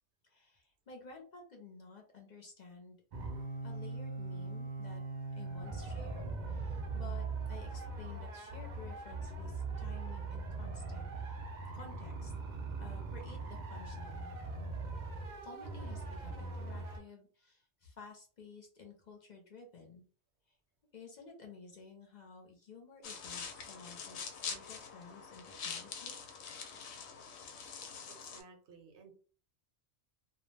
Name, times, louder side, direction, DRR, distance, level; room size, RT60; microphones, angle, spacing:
voice 1, 0.2-3.0 3.4-5.0 5.4-11.5 11.7-12.3 12.8-14.3 15.4-20.0 20.5-20.6 20.9-26.2 27.6-27.7, left 4 dB, 50° left, 1 dB, 0.6 m, -53 dB
sound 1, 3.1-17.0, right 3 dB, 55° right, 0.6 m, -41 dB
sound 2, 23.0-28.4, left 6 dB, 80° left, 0.8 m, -44 dB
voice 2, 27.8-29.1, right 5 dB, 85° right, 3 dB, 1.0 m, -57 dB
2.3 x 2.0 x 3.1 m, 0.41 s
omnidirectional pair, 1.1 m